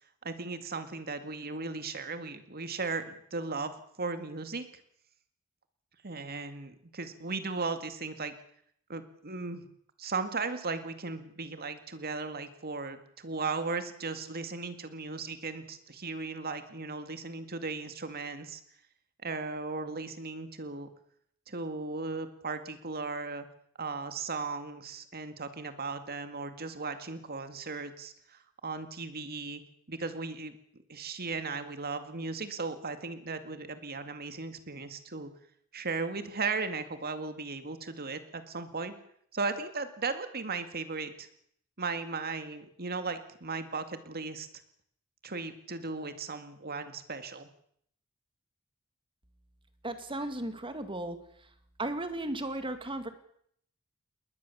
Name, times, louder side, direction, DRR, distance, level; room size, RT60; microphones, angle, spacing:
voice 1, 0.2-4.7 6.0-8.3 8.9-9.7 10.0-18.6 19.2-20.9 21.5-23.5 23.8-29.6 29.9-30.6 30.9-35.3 35.7-38.9 39.3-41.3 41.8-44.5 45.2-47.5, right 4 dB, 45° right, 9 dB, 2.2 m, -36 dB
voice 2, 49.8-51.2 51.8-53.1, right 1 dB, 25° right, 9 dB, 2.2 m, -35 dB
21.0 x 20.0 x 7.2 m, 0.69 s
head